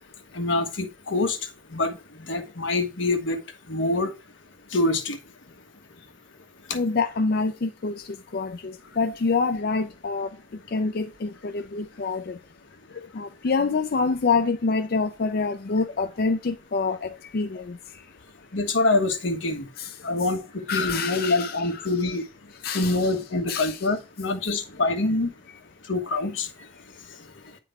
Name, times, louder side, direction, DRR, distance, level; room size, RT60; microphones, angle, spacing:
voice 1, 0.3-1.4 1.7-1.9 2.3-3.4 3.7-4.1 4.7-5.2 18.5-19.7 20.0-22.2 22.7-25.3 25.9-26.5, left 2 dB, 90° left, 1.3 m, -25 dB
voice 2, 6.7-8.0 8.3-10.3 10.7-12.4 13.1-17.8 19.8-19.9 20.7-21.9 22.6-23.1 23.5-23.9, left 4 dB, 55° left, 0.5 m, -26 dB
9.2 x 3.8 x 4.6 m
head